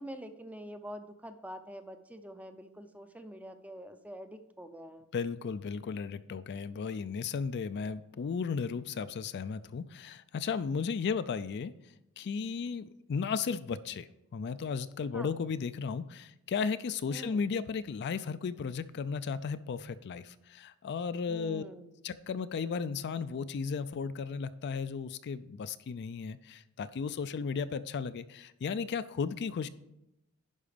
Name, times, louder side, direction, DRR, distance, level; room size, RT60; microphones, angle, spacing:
voice 1, 0.0-5.1 15.1-15.3 17.1-17.4 21.3-22.0, equal, 5° right, 9 dB, 0.5 m, -46 dB
voice 2, 5.1-21.6 22.0-29.7, left 5 dB, 50° left, 13 dB, 0.4 m, -35 dB
10.5 x 5.0 x 5.0 m, 0.87 s
head